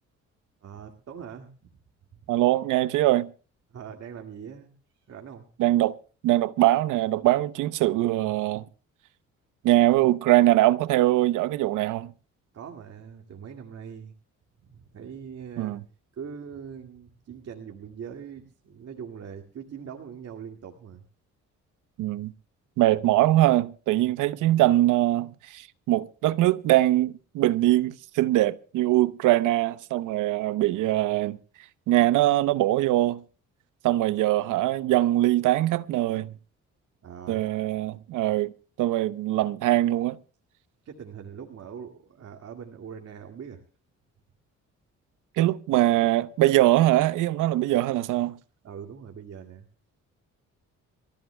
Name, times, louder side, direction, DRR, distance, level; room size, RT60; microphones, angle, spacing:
voice 1, 0.6-1.7 3.7-4.7 5.0-5.5 12.5-14.1 14.6-15.8 16.1-21.0 37.0-37.5 40.9-43.6 48.6-49.7, right 7 dB, 55° right, 2.2 m, -42 dB
voice 2, 2.3-3.3 5.6-6.0 6.2-8.6 9.6-12.1 15.6-15.8 22.0-22.3 22.8-31.4 31.9-33.2 33.8-36.3 37.3-38.5 38.8-40.2 45.4-48.4, right 15 dB, 90° right, 0.8 m, -22 dB
27.0 x 14.5 x 2.3 m
cardioid pair, 90°, 30 cm